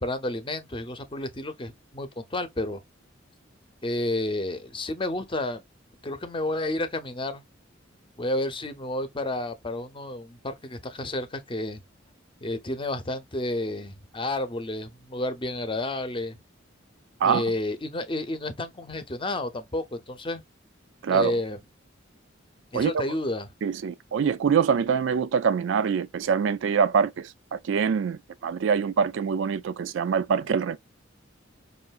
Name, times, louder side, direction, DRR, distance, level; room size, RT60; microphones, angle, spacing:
voice 1, 0.0-2.8 3.8-5.6 6.0-7.4 8.2-11.8 12.4-16.4 17.2-20.4 21.1-21.6 22.7-23.5, left 1 dB, 25° left, 0.8 m, -31 dB
voice 2, 21.0-21.3 22.7-22.9 23.6-30.8, right 6 dB, 70° right, 0.4 m, -24 dB
5.4 x 2.6 x 2.4 m
head